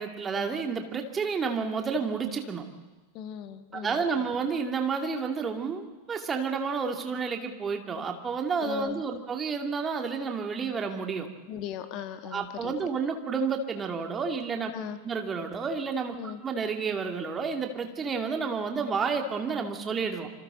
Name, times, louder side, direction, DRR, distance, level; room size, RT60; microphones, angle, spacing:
voice 1, 0.0-2.6 3.7-11.3 12.3-14.7 15.0-16.2 16.4-20.3, right 5 dB, 20° right, 4 dB, 2.4 m, -30 dB
voice 2, 3.1-4.0 8.6-9.0 11.5-12.7 14.7-15.0 16.2-16.4, left 9 dB, 40° left, 10 dB, 1.4 m, -38 dB
27.0 x 26.5 x 4.0 m, 1.2 s
figure-of-eight pair, 90°, 0 cm